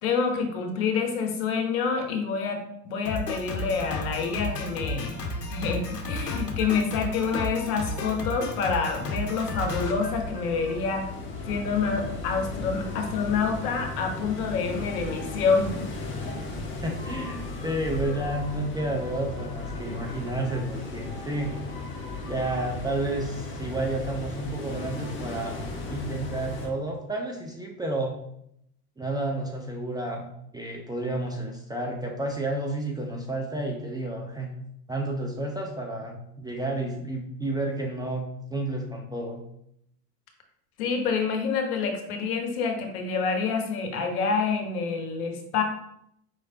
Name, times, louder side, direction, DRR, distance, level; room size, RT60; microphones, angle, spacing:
voice 1, 0.0-5.2 5.5-11.0 11.5-15.8 40.8-45.6, left 5 dB, 65° left, 3 dB, 1.1 m, -27 dB
Drum kit, 3.1-10.8, left 2 dB, 90° left, 0.8 m, -33 dB
sound 1, 8.5-26.7, left 2 dB, 25° left, 1.3 m, -36 dB
voice 2, 16.8-21.5 22.3-28.2 29.0-34.5 34.9-39.4, right 2 dB, 10° right, 0 dB, 0.5 m, -31 dB
5.2 x 3.2 x 2.8 m, 0.74 s
figure-of-eight pair, 75°, 46 cm